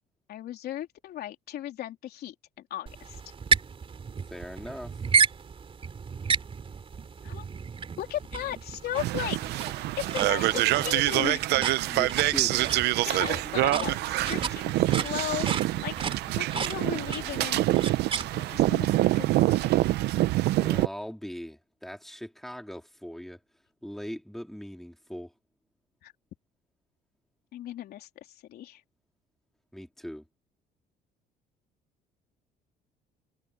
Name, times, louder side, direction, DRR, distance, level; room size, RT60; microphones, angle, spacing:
voice 1, 0.3-3.2 7.2-7.5 8.0-9.6 10.0-11.5 13.0-16.0 16.3-17.7 18.3-19.8 26.0-26.1 27.5-28.8, left 12 dB, 70° left, 3.6 m, -36 dB
sound 1, 2.9-18.7, right 5 dB, 35° right, 3.2 m, -33 dB
voice 2, 4.3-5.0 11.9-12.8 20.6-23.4 23.8-25.3 29.7-30.2, equal, ahead, 3.8 m, -40 dB
sound 2, 9.0-20.9, right 17 dB, 80° right, 0.7 m, -26 dB
cardioid pair, 110°, 17 cm